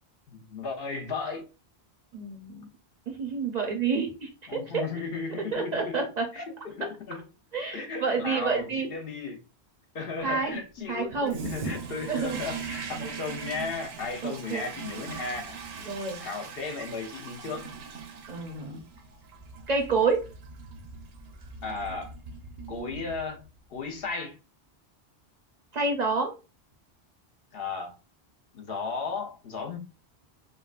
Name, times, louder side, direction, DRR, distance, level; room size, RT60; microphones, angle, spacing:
voice 1, 0.3-1.5 4.5-6.0 6.3-7.2 7.7-9.4 9.9-15.6 16.2-17.7 21.6-22.1 22.7-23.4 23.7-24.4 27.5-27.9 28.5-29.8, left 4 dB, 65° left, 0.9 m, -35 dB
voice 2, 2.1-2.7 3.1-4.9 5.5-6.3 6.8-6.9 7.5-8.9 10.2-10.6 10.9-11.4 11.6-11.7 12.1-12.4 14.2-14.7 15.9-16.2 18.3-18.8 19.7-20.2 25.7-26.3, right 4 dB, 50° right, 0.6 m, -28 dB
Toilet flush, 11.3-23.6, right 5 dB, 75° right, 0.9 m, -41 dB
3.7 x 2.1 x 2.3 m
omnidirectional pair, 1.1 m